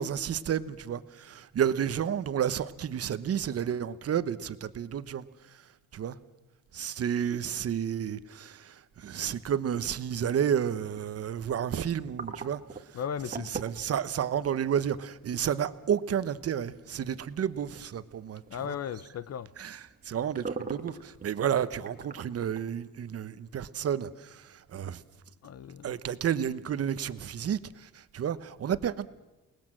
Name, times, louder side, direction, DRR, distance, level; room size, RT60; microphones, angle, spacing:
voice 1, 0.0-6.2 6.7-13.0 13.3-18.7 19.6-25.0 25.8-29.1, right 9 dB, 45° right, 14 dB, 1.0 m, -31 dB
sound 1, 10.3-22.8, right 4 dB, 25° right, 1.5 m, -46 dB
voice 2, 12.9-13.5 18.5-19.5 25.4-26.0, left 8 dB, 50° left, 16 dB, 0.8 m, -36 dB
29.0 x 19.5 x 7.6 m, 1.1 s
cardioid pair, 125°, 34 cm